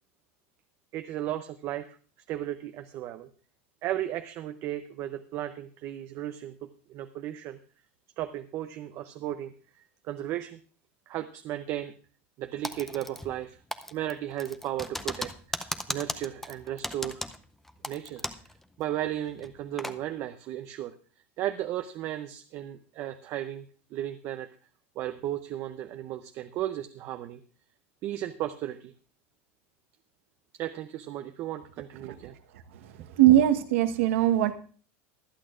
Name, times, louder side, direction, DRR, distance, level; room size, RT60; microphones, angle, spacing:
voice 1, 0.9-1.9 2.3-3.3 3.8-7.6 8.2-9.5 10.0-10.6 11.1-11.9 12.4-13.6 13.9-15.6 15.9-17.2 17.8-18.2 18.8-20.9 21.4-24.5 25.0-27.4 28.0-28.9 30.5-32.3, right 12 dB, 40° right, 8 dB, 0.6 m, -35 dB
Typing, 12.6-13.4 13.7-18.5 18.8-18.9 19.4-20.0, left 1 dB, 5° left, 0.6 m, -36 dB
voice 2, 33.2-34.5, right 13 dB, 80° right, 8 dB, 1.3 m, -20 dB
24.0 x 8.5 x 2.5 m, 0.40 s
supercardioid pair, 155°, 7 cm